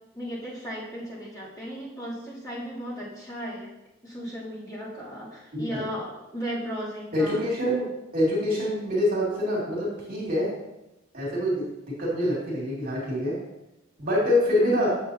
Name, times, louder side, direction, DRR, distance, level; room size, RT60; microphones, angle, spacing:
voice 1, 0.1-3.7 4.0-7.5, equal, 20° left, -9 dB, 2.9 m, -36 dB
voice 2, 7.1-7.9 8.1-10.5 11.1-13.4 14.0-14.9, left 1 dB, 50° right, -5 dB, 2.5 m, -25 dB
8.2 x 7.2 x 2.8 m, 0.93 s
head